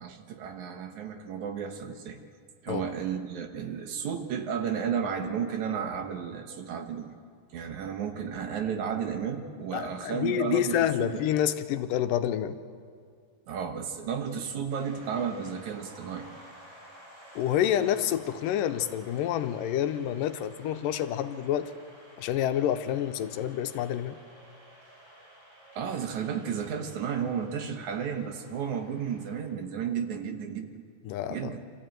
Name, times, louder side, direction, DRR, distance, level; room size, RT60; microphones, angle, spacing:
voice 1, 0.0-2.2 2.6-7.1 7.5-11.2 13.5-16.3 25.8-30.8 31.3-31.6, right 7 dB, 65° right, 6 dB, 2.4 m, -33 dB
voice 2, 9.7-12.6 17.4-21.7 22.2-24.2 31.1-31.5, left 10 dB, 80° left, 9 dB, 2.3 m, -28 dB
sound 1, 14.7-29.4, right 1 dB, 25° right, 5.5 m, -53 dB
25.5 x 14.5 x 9.1 m, 2.1 s
omnidirectional pair, 3.9 m